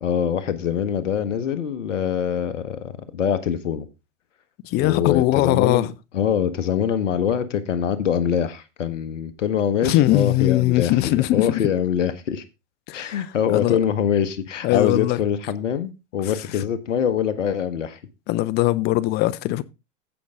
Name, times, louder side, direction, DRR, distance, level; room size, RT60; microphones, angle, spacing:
voice 1, 0.0-3.9 4.8-5.9 6.1-12.4 12.9-18.0, left 8 dB, 75° left, 1.3 m, -24 dB
voice 2, 4.6-5.9 9.8-11.6 12.9-13.2 13.5-13.8 14.6-15.2 18.3-19.6, left 16 dB, 25° left, 0.6 m, -20 dB
16.0 x 5.4 x 3.7 m
hypercardioid pair, 120°, 37 cm